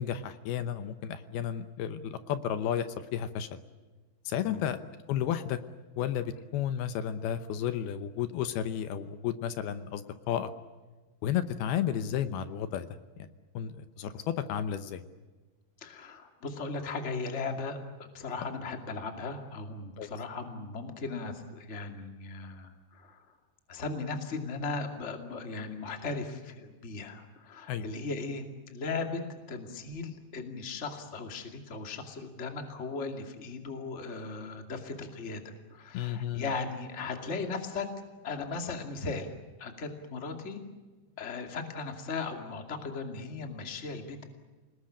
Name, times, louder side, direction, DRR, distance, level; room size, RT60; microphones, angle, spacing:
voice 1, 0.0-3.6 4.3-4.8 5.1-5.6 6.0-10.5 11.2-12.9 13.2-13.3 13.5-15.0 20.0-20.1 27.7-27.9 35.9-36.5, left 9 dB, 75° left, 11 dB, 2.8 m, -32 dB
voice 2, 15.8-23.2 23.7-37.9 38.2-39.3 39.6-40.6 41.2-44.3, left 4 dB, 25° left, 5 dB, 1.9 m, -37 dB
28.0 x 19.5 x 8.6 m, 1.3 s
omnidirectional pair, 4.6 m